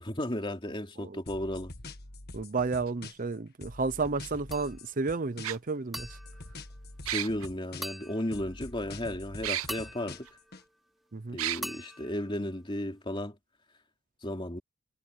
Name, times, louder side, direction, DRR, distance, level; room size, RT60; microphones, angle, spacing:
voice 1, 0.0-1.7 7.0-10.3 11.3-13.3 14.2-14.6, left 1 dB, 25° left, 3.0 m, -34 dB
sound 1, 1.3-3.3 3.6-5.7 6.0-8.0 8.3-10.6, left 2 dB, 50° left, 1.7 m, -45 dB
voice 2, 2.3-6.1 11.1-11.4, right 4 dB, 40° right, 0.6 m, -32 dB
sound 2, 2.9-3.0 4.4-4.5 5.4-5.6 7.1-7.5 9.4-9.7 10.3-10.4 11.4-11.6, right 12 dB, 75° right, 0.7 m, -31 dB
sound 3, 4.5-5.1 5.9-7.4 7.8-8.8 9.7-11.2 11.6-13.0, equal, ahead, 3.6 m, -45 dB
head